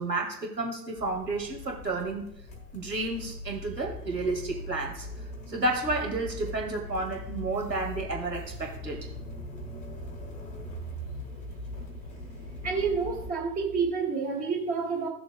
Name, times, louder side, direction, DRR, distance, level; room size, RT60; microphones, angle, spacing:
voice 1, 0.0-2.3 2.7-5.1 5.5-9.1, right 2 dB, 85° right, 2 dB, 2.0 m, -31 dB
sound 1, 1.0-13.3, left 1 dB, 15° left, 1.2 m, -40 dB
voice 2, 12.6-15.1, right 5 dB, 15° right, 1 dB, 1.3 m, -29 dB
15.0 x 6.8 x 2.2 m, 0.75 s
figure-of-eight pair, 105°, 49 cm